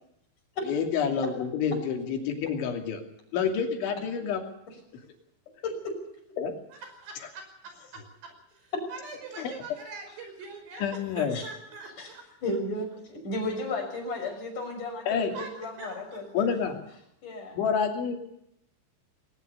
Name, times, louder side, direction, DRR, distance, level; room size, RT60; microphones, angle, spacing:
voice 1, 0.7-3.0 3.3-4.4 6.4-6.5 9.4-9.5 10.8-11.4 15.1-15.3 16.3-16.8 17.5-18.2, left 6 dB, 80° left, 4 dB, 5.1 m, -28 dB
voice 2, 6.8-12.2 15.3-15.5 15.8-16.2, right 4 dB, 65° right, 5 dB, 7.3 m, -43 dB
voice 3, 12.4-16.3 17.2-17.6, left 2 dB, 45° left, 3 dB, 7.3 m, -34 dB
20.5 x 19.0 x 6.9 m, 0.76 s
omnidirectional pair, 5.3 m